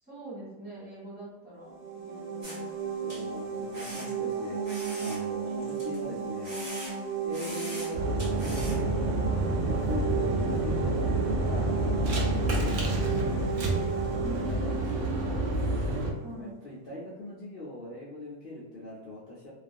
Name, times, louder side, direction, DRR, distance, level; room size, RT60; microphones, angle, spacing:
voice 1, 0.0-2.8 14.2-14.6 16.2-16.6, right 1 dB, 5° right, -9 dB, 1.2 m, -44 dB
sound 1, 1.6-16.3, right 6 dB, 90° right, 1.1 m, -34 dB
sound 2, 2.4-2.6 3.1-3.2 3.7-4.1 4.6-6.0 6.4-7.1 7.3-7.9 8.2-8.8, equal, 30° right, 0.8 m, -42 dB
voice 2, 3.0-4.6 5.0-6.7 7.2-8.0 8.3-9.2 9.6-10.1 10.5-11.2 11.4-11.7 12.1-13.2 14.1-15.5 16.3-19.5, left 2 dB, 70° left, -8 dB, 0.5 m, -42 dB
sound 3, 7.9-16.1, right 1 dB, 65° right, 0.8 m, -28 dB
2.4 x 2.3 x 2.5 m, 1.1 s
omnidirectional pair, 1.6 m